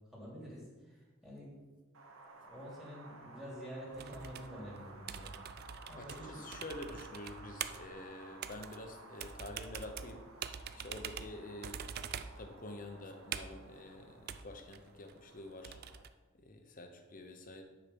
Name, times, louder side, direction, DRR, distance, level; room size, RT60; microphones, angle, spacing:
voice 1, 0.1-1.5 2.5-5.3 5.9-6.4, equal, ahead, -5 dB, 2.7 m, -48 dB
Wind, 1.9-16.0, right 3 dB, 85° right, 1.0 m, -55 dB
sound 1, 3.9-16.1, right 8 dB, 50° right, 0.4 m, -45 dB
voice 2, 5.9-11.8 12.4-15.8 16.4-17.6, left 2 dB, 40° left, 5 dB, 1.0 m, -48 dB
9.9 x 5.0 x 5.3 m, 1.3 s
head